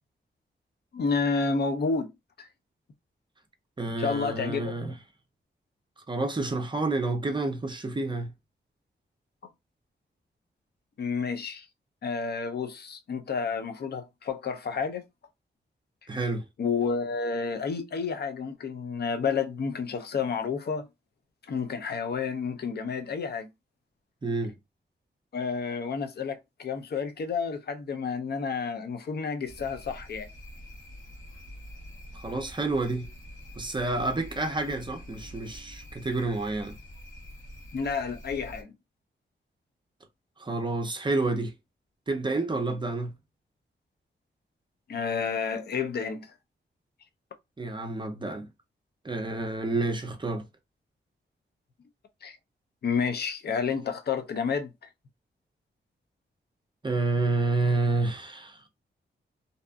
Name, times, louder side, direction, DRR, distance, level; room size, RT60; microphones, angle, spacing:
voice 1, 0.9-2.1 2.4-2.5 4.0-4.9 11.0-11.7 12.0-15.0 16.6-20.9 21.5-23.5 25.3-30.3 37.7-38.7 44.9-46.3 52.2-52.4 52.8-54.7, left 5 dB, 55° left, 0.5 m, -30 dB
voice 2, 3.8-4.9 6.1-8.3 16.1-16.4 24.2-24.6 32.1-33.1 33.6-36.8 40.4-41.5 42.1-43.1 47.6-48.5 49.0-50.5 56.8-58.7, right 2 dB, 25° right, 0.5 m, -29 dB
sound 1, 29.4-38.6, equal, 80° left, 1.0 m, -46 dB
2.7 x 2.4 x 2.2 m
wide cardioid pair, 105°, 20 cm